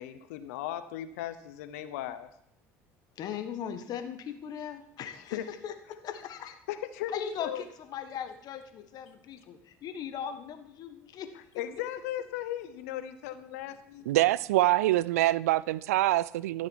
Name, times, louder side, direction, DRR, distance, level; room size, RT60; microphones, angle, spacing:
voice 1, 0.0-2.3 5.3-5.4 6.7-7.6 11.6-14.0, left 12 dB, 80° left, 0.8 m, -37 dB
voice 2, 3.2-6.6 7.1-11.3, left 8 dB, 55° left, 1.5 m, -39 dB
voice 3, 14.1-16.7, right 16 dB, 85° right, 0.4 m, -25 dB
13.5 x 7.5 x 4.7 m
hypercardioid pair, 70°, 8 cm